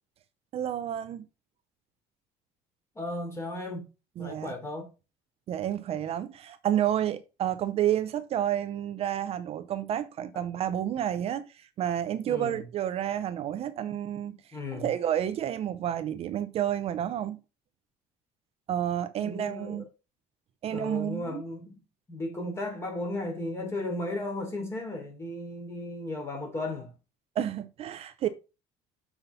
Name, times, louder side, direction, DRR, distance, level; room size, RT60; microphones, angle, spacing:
voice 1, 0.5-1.2 4.2-4.5 5.5-11.5 11.8-14.4 14.7-17.4 18.7-19.8 20.6-21.4 27.4-28.3, right 11 dB, 45° right, 0.6 m, -30 dB
voice 2, 3.0-3.9 4.2-4.9 12.2-12.7 13.8-14.0 14.5-14.9 19.2-19.9 20.7-21.8 22.1-26.9, left 2 dB, 20° left, 3.6 m, -35 dB
6.8 x 5.7 x 4.0 m
cardioid pair, 150°, 15 cm